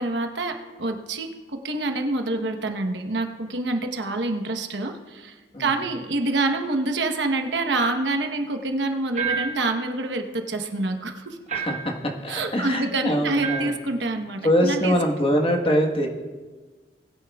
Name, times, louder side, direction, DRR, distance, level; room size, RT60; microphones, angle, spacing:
voice 1, 0.0-11.4 12.3-14.9, right 2 dB, 80° right, 5 dB, 1.0 m, -27 dB
sound 1, 9.2-9.7 11.5-12.0 13.4-13.8, right 6 dB, 40° right, 0.9 m, -29 dB
voice 2, 11.5-13.7 14.4-16.1, equal, 30° left, 1 dB, 1.3 m, -23 dB
20.0 x 9.5 x 2.3 m, 1.4 s
head